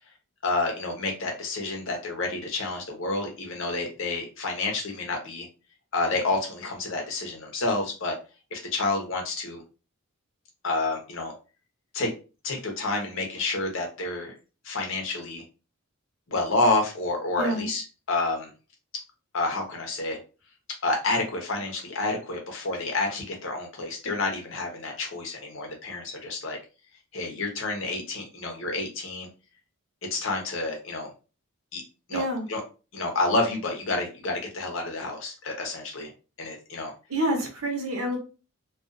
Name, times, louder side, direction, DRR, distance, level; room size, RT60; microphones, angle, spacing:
voice 1, 0.4-5.5 5.9-8.2 8.5-9.6 10.6-11.3 11.9-12.1 12.4-14.3 14.6-15.4 16.3-18.5 19.3-20.2 20.8-26.6 27.1-29.3 30.1-31.1 31.7-31.8 32.1-32.6 32.9-36.1 36.4-36.9, left 2 dB, 60° left, 2 dB, 0.8 m, -29 dB
voice 2, 17.4-17.7 32.1-32.5 37.1-38.2, right 1 dB, 75° right, 2 dB, 0.9 m, -27 dB
2.4 x 2.4 x 2.5 m, 0.33 s
head